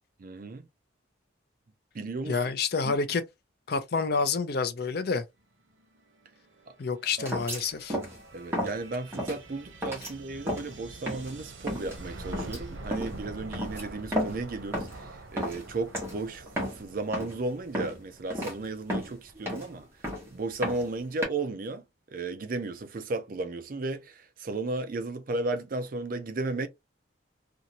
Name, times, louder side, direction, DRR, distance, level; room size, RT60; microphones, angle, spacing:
voice 1, 0.2-0.7 1.9-2.4 2.8-2.9 8.3-16.5 16.7-19.9 20.3-21.8 22.1-26.7, right 2 dB, 45° right, 0.4 m, -34 dB
voice 2, 2.3-3.2 3.7-5.2 6.8-8.0, left 4 dB, 55° left, 0.5 m, -28 dB
sound 1, 5.8-19.3, right 2 dB, 80° right, 0.9 m, -46 dB
sound 2, 7.2-7.6 7.9-8.2 8.5-8.8 9.1-9.4 9.8-10.1 10.5-10.7 11.1-11.3 11.7-11.9 12.3-12.6 12.9-13.2 13.5-14.5 14.7-15.0 15.4-15.7 15.9-16.2 16.5-16.8 17.1-17.4 17.7-18.0 18.3-18.5 18.9-19.7 20.0-20.3 20.6-21.2, equal, 10° right, 1.1 m, -32 dB
2.7 x 2.4 x 2.9 m
head